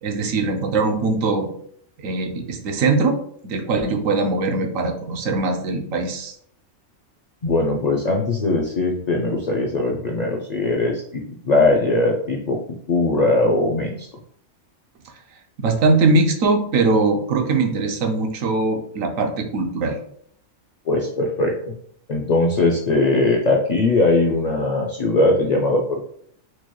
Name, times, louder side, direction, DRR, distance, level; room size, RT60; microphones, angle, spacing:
voice 1, 0.0-1.5 2.0-3.2 3.4-6.3 15.6-20.0, right 3 dB, 90° right, 4 dB, 1.1 m, -21 dB
voice 2, 7.4-14.1 20.9-21.7 22.1-26.0, left 2 dB, 70° left, 1 dB, 0.4 m, -20 dB
4.6 x 3.0 x 2.2 m, 0.64 s
omnidirectional pair, 1.3 m